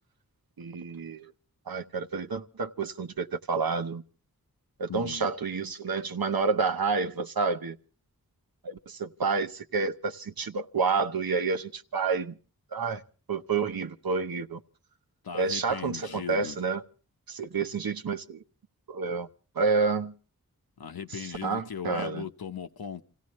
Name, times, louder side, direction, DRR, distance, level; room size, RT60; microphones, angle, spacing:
voice 1, 0.6-1.3 1.7-4.0 4.8-7.8 8.6-12.3 12.7-13.0 13.3-14.6 15.3-16.8 17.3-18.4 18.9-19.3 19.5-20.1 21.2-22.2, right 4 dB, 75° right, 0.9 m, -29 dB
voice 2, 4.9-5.3 15.2-16.6 20.8-23.0, left 7 dB, 80° left, 1.0 m, -38 dB
28.0 x 16.5 x 3.1 m
wide cardioid pair, 60°, 36 cm